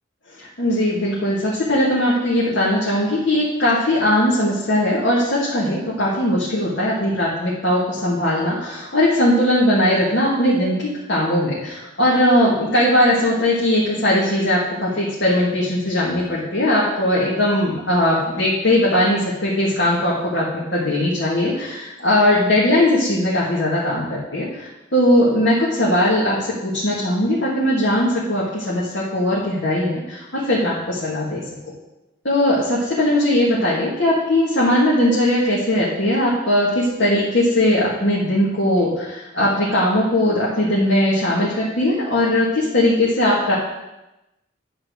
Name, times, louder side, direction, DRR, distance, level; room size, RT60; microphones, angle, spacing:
voice 1, 0.4-24.5 24.9-31.4 32.2-43.5, left 1 dB, 60° left, -9 dB, 2.2 m, -19 dB
10.0 x 4.7 x 6.5 m, 0.97 s
head